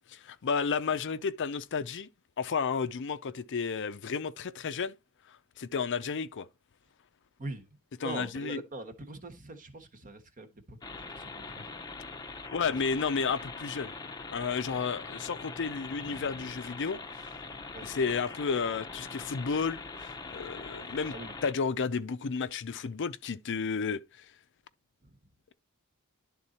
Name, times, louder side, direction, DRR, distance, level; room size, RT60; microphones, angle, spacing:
voice 1, 0.1-2.1 2.4-4.9 5.3-6.5 8.0-8.6 12.5-13.9 14.3-17.3 17.8-21.1 21.4-24.3, left 5 dB, 55° left, 0.5 m, -32 dB
voice 2, 7.4-11.7 12.7-12.8 16.0-16.6 17.7-18.0 21.1-21.3 25.0-25.2, right 2 dB, 35° right, 1.2 m, -43 dB
sound 1, 10.8-21.5, left 3 dB, 15° left, 0.7 m, -42 dB
11.5 x 3.9 x 4.2 m
head